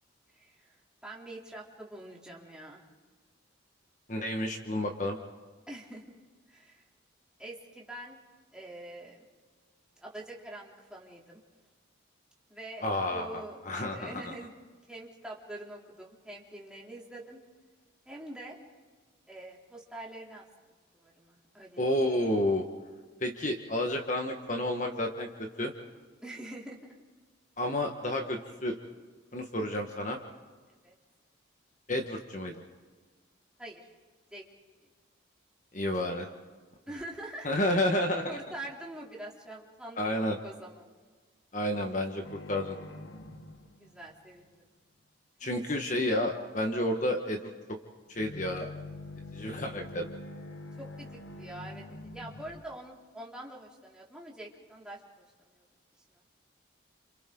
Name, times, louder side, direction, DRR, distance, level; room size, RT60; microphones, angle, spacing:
voice 1, 0.3-2.8 5.7-6.2 6.5-6.8 7.4-8.2 8.5-9.3 10.0-11.4 12.5-12.8 13.1-13.6 13.9-14.5 14.9-17.4 18.0-18.6 19.3-20.5 20.9-22.0 26.2-26.9 30.7-30.9 33.6-33.8 34.3-34.4 36.9-37.5 38.3-40.8 43.8-44.7 45.4-45.5 50.8-51.8 52.1-55.0 55.4-55.6, right 1 dB, 5° right, -4 dB, 3.3 m, -45 dB
voice 2, 4.1-5.2 12.8-14.2 21.8-22.6 23.2-25.3 25.6-25.7 27.6-28.8 29.3-30.2 31.9-32.6 35.7-36.3 37.4-38.3 40.0-40.4 41.5-42.8 45.4-47.5 48.1-48.7 49.3-50.1, left 1 dB, 40° left, 3 dB, 1.6 m, -30 dB
sound 1, 42.2-44.5 48.1-52.6, left 2 dB, 80° left, 1.5 m, -45 dB
29.5 x 27.5 x 3.9 m, 1.4 s
head